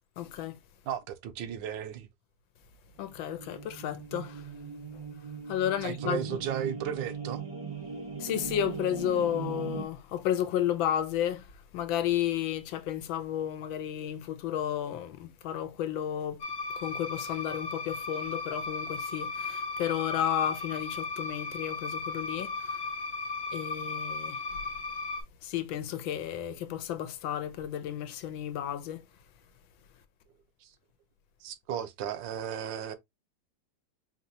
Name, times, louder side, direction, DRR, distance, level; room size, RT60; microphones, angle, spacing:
voice 1, 0.2-0.6 3.0-4.5 4.9-5.0 5.5-6.4 8.2-16.4 16.8-22.9 23.5-24.6 25.4-29.0, left 10 dB, 85° left, 1.4 m, -32 dB
voice 2, 0.9-2.1 5.8-7.4 30.6-30.7 31.4-33.0, right 9 dB, 75° right, 1.3 m, -35 dB
sound 1, 3.1-9.8, right 5 dB, 55° right, 0.3 m, -39 dB
sound 2, 16.4-25.2, left 3 dB, 50° left, 1.1 m, -36 dB
5.1 x 3.0 x 2.7 m
omnidirectional pair, 2.1 m